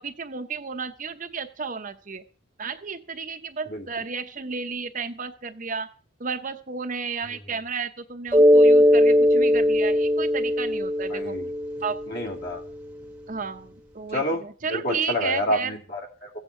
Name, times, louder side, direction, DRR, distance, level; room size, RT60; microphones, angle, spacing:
voice 1, 0.0-2.2 2.6-5.9 6.2-11.3 11.8-12.0 13.3-15.7, right 5 dB, 40° right, 7 dB, 0.8 m, -32 dB
Mallet percussion, 8.3-12.8, equal, 5° right, 1.1 m, -19 dB
voice 2, 11.1-11.5 12.1-12.6 14.1-14.4 14.7-16.3, left 1 dB, 50° left, 1 dB, 2.4 m, -28 dB
15.0 x 8.1 x 5.5 m, 0.40 s
head